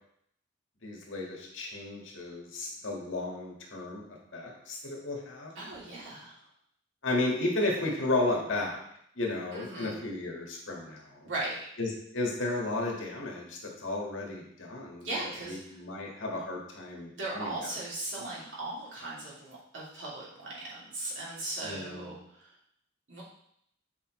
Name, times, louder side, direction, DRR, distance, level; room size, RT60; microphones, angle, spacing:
voice 1, 0.8-4.0 4.3-5.5 7.0-8.8 9.2-11.3 11.8-17.7 18.2-18.3 21.6-22.2, left 2 dB, 80° left, -1 dB, 1.7 m, -33 dB
voice 2, 5.6-6.3 9.5-10.0 11.2-11.6 15.0-15.6 17.0-22.2 23.1-23.2, right 2 dB, 70° right, -7 dB, 2.7 m, -38 dB
8.2 x 5.1 x 3.1 m, 0.72 s
head